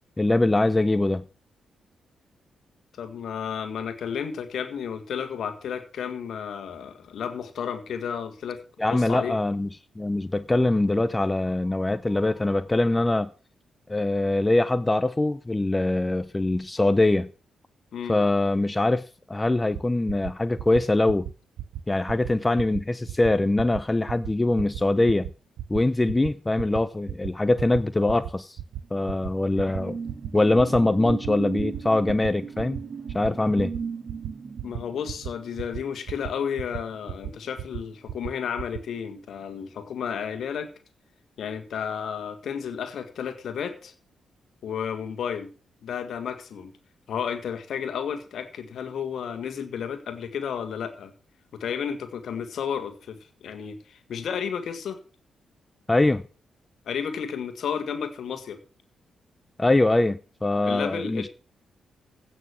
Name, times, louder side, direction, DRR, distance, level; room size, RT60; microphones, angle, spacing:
voice 1, 0.2-1.2 8.8-9.7 10.0-13.3 13.9-17.3 18.1-21.3 21.9-25.3 25.7-28.6 28.9-30.0 30.3-32.8 33.1-33.7 55.9-56.2 59.6-61.3, left 2 dB, 20° left, 0.7 m, -23 dB
voice 2, 3.0-8.6 8.9-9.4 17.9-18.2 34.6-40.7 41.4-43.9 44.6-45.5 45.8-46.7 47.1-51.1 51.5-55.0 56.9-58.6 60.6-61.3, left 7 dB, 70° left, 1.7 m, -32 dB
sound 1, 19.7-19.8 20.1-20.3 20.6-20.8 21.1-21.3 21.6-21.8 22.1-22.3 22.6-22.8 23.1-23.3 23.6-23.8 24.1-24.3 24.6-24.8 25.1-25.3 25.6-25.8 26.1-26.3 26.6-26.8 27.1-27.3 27.6-27.8 28.1-28.3 28.6-28.8 29.1-29.3 29.6-29.8 30.1-30.3 30.6-30.8 31.1-31.3 31.6-31.8 32.1-32.3 32.6-32.8 33.1-33.3 33.6-33.8 34.1-34.3 34.6-34.8 35.1-35.3 35.6-35.8 36.1-36.3 36.6-36.8 37.1-37.3 37.6-37.8 38.1-38.3 38.6-38.8, right 12 dB, 80° right, 0.8 m, -34 dB
sound 2, 28.8-37.8 38.1-38.4, right 6 dB, 55° right, 3.4 m, -37 dB
16.0 x 6.2 x 6.3 m
hypercardioid pair, 40°, 0 cm